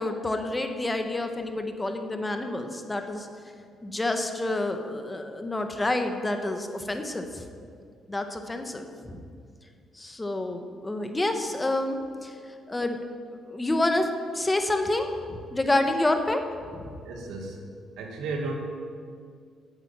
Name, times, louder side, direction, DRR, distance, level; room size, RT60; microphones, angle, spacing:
voice 1, 0.0-3.3 3.8-7.5 8.1-9.2 9.9-12.3 12.7-13.0 13.5-14.1 14.3-16.4 16.7-16.9, left 2 dB, 15° left, 6 dB, 1.3 m, -28 dB
voice 2, 17.0-17.6 18.0-18.5, right 3 dB, 85° right, 1 dB, 2.1 m, -34 dB
10.5 x 8.9 x 7.5 m, 2.2 s
cardioid pair, 90°, 0 cm